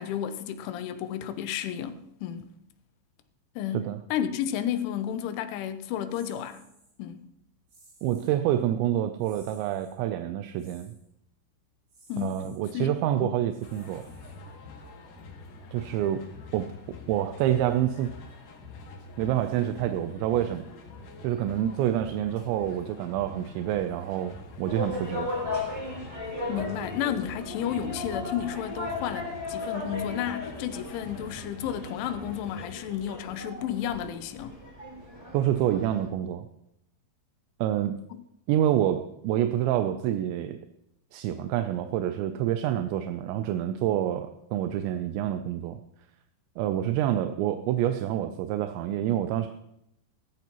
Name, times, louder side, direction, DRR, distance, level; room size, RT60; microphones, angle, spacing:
voice 1, 0.0-2.5 3.6-6.6 7.0-7.3 12.1-12.4 12.7-13.4 26.5-34.6 38.1-38.2, left 10 dB, 85° left, 3.2 m, -32 dB
sound 1, 6.1-6.9 7.7-8.4 9.2-10.0 10.6-11.1 11.9-12.6 13.5-14.7, right 2 dB, 65° right, 8.4 m, -58 dB
voice 2, 8.0-10.9 12.2-14.0 15.7-16.2 16.5-16.7 17.1-18.2 19.2-20.7 21.2-25.3 35.3-36.5 37.6-38.0 38.5-40.6 41.1-45.8 46.6-49.5, right 11 dB, 80° right, 2.8 m, -27 dB
sound 2, 13.6-32.7, left 3 dB, 60° left, 2.4 m, -46 dB
sound 3, 24.6-36.1, left 2 dB, 10° right, 1.6 m, -36 dB
17.0 x 14.0 x 3.0 m
omnidirectional pair, 5.5 m